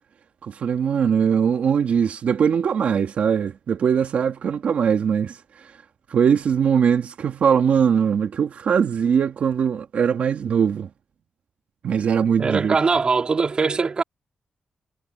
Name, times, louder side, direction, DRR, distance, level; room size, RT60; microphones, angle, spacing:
voice 1, 0.4-5.7 6.1-10.9 11.8-12.8, right 7 dB, 75° right, 1.9 m, -21 dB
voice 2, 12.4-14.0, right 4 dB, 40° right, 3.7 m, -21 dB
wide cardioid pair, 130°, 2 cm